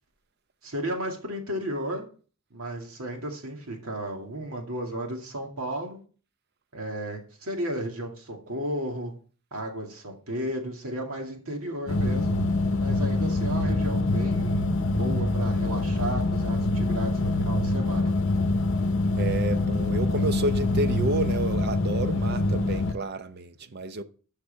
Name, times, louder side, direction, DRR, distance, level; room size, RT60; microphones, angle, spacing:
voice 1, 0.6-2.1 2.5-6.0 6.7-9.1 9.5-12.4 12.8-18.1, right 1 dB, 75° right, 2.2 m, -34 dB
sound 1, 11.9-22.9, left 2 dB, 55° left, 0.7 m, -25 dB
voice 2, 19.2-24.0, right 2 dB, 45° right, 0.7 m, -30 dB
12.0 x 6.5 x 3.5 m
head